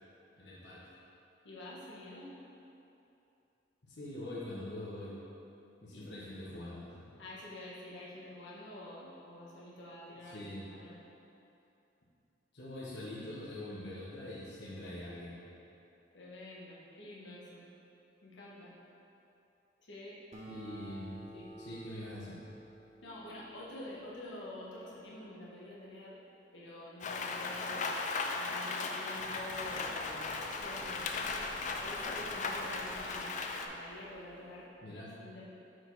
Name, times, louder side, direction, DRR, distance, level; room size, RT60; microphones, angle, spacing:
voice 1, 0.4-0.9 3.8-5.2 5.8-7.1 10.2-10.6 12.5-15.4 20.5-21.2 21.6-22.4 34.8-35.1, left 1 dB, 65° left, -8 dB, 1.2 m, -44 dB
voice 2, 1.4-2.4 5.9-6.1 7.2-11.0 16.1-17.6 18.2-18.7 19.8-20.2 20.8-21.0 21.3-21.5 23.0-26.2 26.5-31.3 31.8-35.5, left 1 dB, 85° left, -6 dB, 1.3 m, -48 dB
Acoustic guitar, 20.3-25.2, equal, 40° right, 0.8 m, -52 dB
Rain, 27.0-33.7, left 3 dB, 40° left, 0.4 m, -37 dB
sound 1, 29.2-34.7, equal, 60° right, 1.2 m, -55 dB
6.2 x 4.6 x 4.6 m, 2.8 s
head